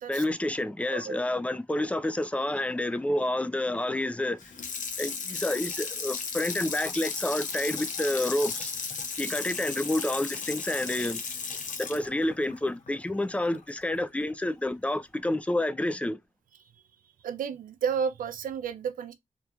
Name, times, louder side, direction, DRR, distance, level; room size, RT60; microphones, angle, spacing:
voice 1, 0.1-4.4 5.0-8.7 9.2-11.2 11.8-16.2, left 1 dB, 10° left, 0.3 m, -29 dB
Water tap faucet / Sink (filling or washing), 4.4-13.6 14.0-14.1, left 5 dB, 65° left, 0.6 m, -35 dB
voice 2, 17.2-19.1, right 7 dB, 80° right, 0.4 m, -31 dB
2.9 x 2.4 x 2.3 m
cardioid pair, 80°, 14 cm